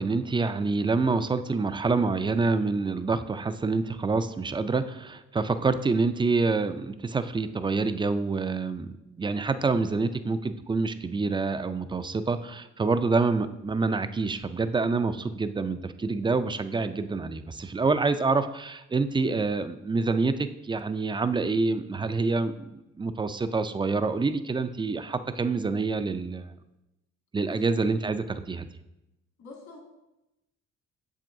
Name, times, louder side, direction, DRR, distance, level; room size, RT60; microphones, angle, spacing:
voice 1, 0.0-26.5 27.3-28.7, right 4 dB, 15° right, 11 dB, 0.3 m, -27 dB
voice 2, 29.4-29.8, left 3 dB, 65° left, 0 dB, 1.9 m, -46 dB
7.4 x 7.0 x 2.6 m, 0.94 s
cardioid pair, 90°, 30 cm